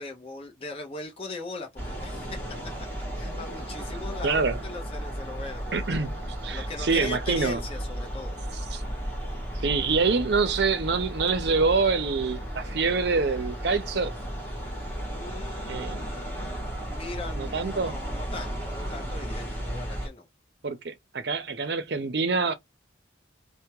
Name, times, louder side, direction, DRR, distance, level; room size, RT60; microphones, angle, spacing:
voice 1, 0.0-2.4 3.1-5.8 6.5-8.4 15.1-16.2 16.9-20.3, left 3 dB, 30° left, 0.8 m, -39 dB
sound 1, 1.8-20.1, equal, 10° left, 1.0 m, -34 dB
voice 2, 4.2-4.6 5.7-6.1 6.4-7.6 8.7-8.8 9.6-14.1 15.7-16.0 17.4-18.0 20.6-22.6, right 4 dB, 60° right, 0.6 m, -26 dB
3.3 x 2.2 x 2.9 m
head